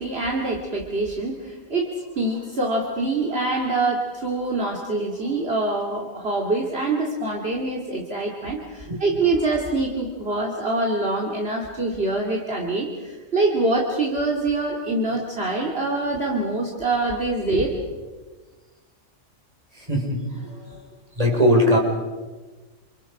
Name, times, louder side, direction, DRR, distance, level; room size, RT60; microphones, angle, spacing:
voice 1, 0.0-17.7 20.5-20.8 21.3-21.4, right 2 dB, 50° right, -1 dB, 2.8 m, -25 dB
voice 2, 19.8-20.5 21.2-21.8, equal, 30° right, 1 dB, 4.8 m, -20 dB
29.0 x 28.5 x 5.0 m, 1.3 s
omnidirectional pair, 1.3 m